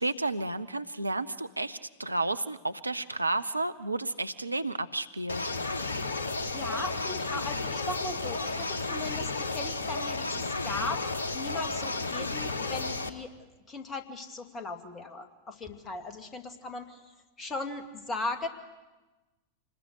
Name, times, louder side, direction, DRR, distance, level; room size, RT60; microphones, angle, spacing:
voice 1, 0.0-5.4, right 2 dB, 85° right, 12 dB, 0.7 m, -32 dB
sound 1, 5.3-13.1, left 3 dB, 70° left, 1.2 m, -33 dB
voice 2, 6.5-11.0 11.3-13.3 13.7-18.5, left 3 dB, 20° left, 7 dB, 2.2 m, -38 dB
26.5 x 20.5 x 7.9 m, 1.2 s
figure-of-eight pair, 90°, 0 cm